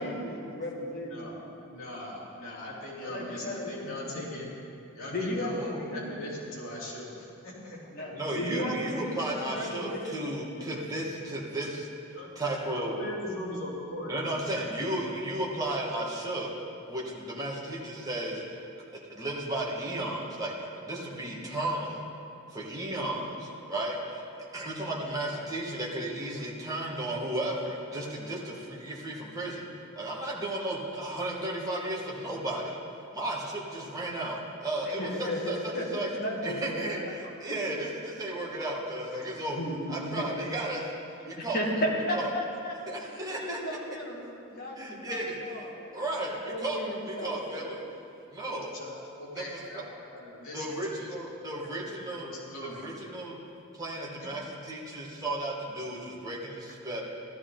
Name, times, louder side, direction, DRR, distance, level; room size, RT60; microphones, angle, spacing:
voice 1, 0.0-1.3 3.0-4.2 5.1-6.2 7.9-10.2 35.0-35.9 36.2-37.1 37.4-37.6 39.5-40.3 41.4-42.7 43.1-44.2 44.5-46.0 46.4-47.7, equal, 45° left, -3 dB, 2.2 m, -34 dB
voice 2, 1.0-4.5 4.9-8.2 12.1-12.3 12.7-15.0 48.4-51.1 51.5-51.7 52.1-52.8, left 1 dB, 70° left, -6 dB, 3.1 m, -40 dB
voice 3, 8.1-11.9 12.3-13.0 14.1-16.5 16.9-18.6 18.9-22.0 22.5-24.2 24.5-29.7 29.9-32.8 33.1-35.6 35.9-36.1 36.4-40.9 41.2-41.6 42.1-42.3 42.9-43.8 44.8-45.6 45.9-47.8 48.3-48.7 49.3-49.6 50.5-52.3 52.6-53.4 53.8-57.0, right 1 dB, 15° right, -4 dB, 1.6 m, -34 dB
14.5 x 12.5 x 3.9 m, 2.7 s
head